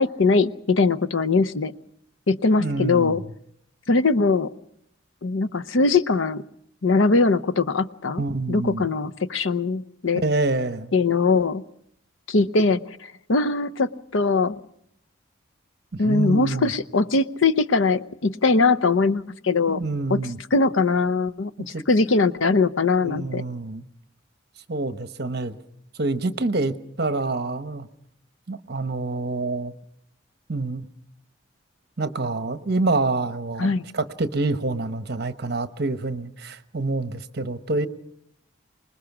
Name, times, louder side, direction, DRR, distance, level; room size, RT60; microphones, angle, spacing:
voice 1, 0.0-1.7 2.3-3.2 3.9-4.5 5.2-6.4 6.8-10.2 10.9-11.6 12.3-14.6 16.0-19.8 20.1-20.2 20.5-23.4 33.6-33.8, left 3 dB, 75° left, 14 dB, 0.8 m, -21 dB
voice 2, 2.6-3.2 8.2-8.8 10.2-10.9 15.9-16.7 19.7-20.4 21.6-21.8 23.0-23.8 24.7-25.6 26.0-27.9 28.5-29.7 30.5-30.8 32.0-37.9, right 2 dB, 50° right, 11 dB, 1.1 m, -27 dB
25.5 x 20.5 x 6.0 m, 0.70 s
head